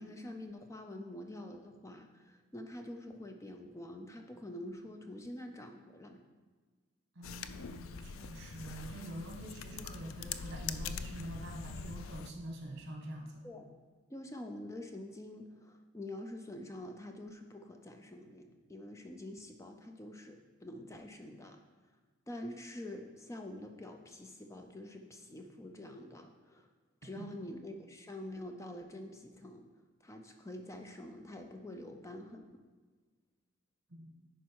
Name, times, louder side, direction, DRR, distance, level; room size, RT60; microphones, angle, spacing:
voice 1, 0.0-6.2 13.4-13.6 14.1-21.6 22.3-26.7 27.0-29.7 30.0-32.6, left 1 dB, 15° left, 4 dB, 0.4 m, -46 dB
voice 2, 7.1-13.4 27.2-27.3 33.9-34.1, right 1 dB, 55° right, 1 dB, 1.5 m, -45 dB
sound 1, 7.2-12.3, left 6 dB, 75° left, 0.4 m, -43 dB
10.5 x 4.5 x 4.6 m, 1.4 s
head